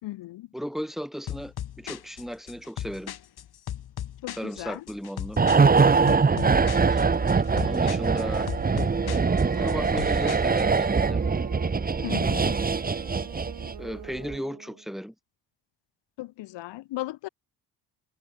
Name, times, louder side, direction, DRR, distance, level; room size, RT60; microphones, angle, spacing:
voice 1, 0.0-0.5 4.2-4.8 12.0-12.6 16.2-17.3, left 17 dB, 85° left, 3.5 m, -36 dB
voice 2, 0.5-3.1 4.4-5.4 6.9-7.1 7.5-8.5 9.5-11.2 13.8-15.1, equal, ahead, 7.9 m, -35 dB
sound 1, 1.3-10.8, left 10 dB, 60° left, 3.8 m, -38 dB
sound 2, 5.4-13.9 14.2-14.3, right 4 dB, 20° right, 1.1 m, -23 dB
Wind instrument woodwind instrument, 6.6-14.9, right 9 dB, 60° right, 7.1 m, -44 dB
cardioid pair, 85°, 41 cm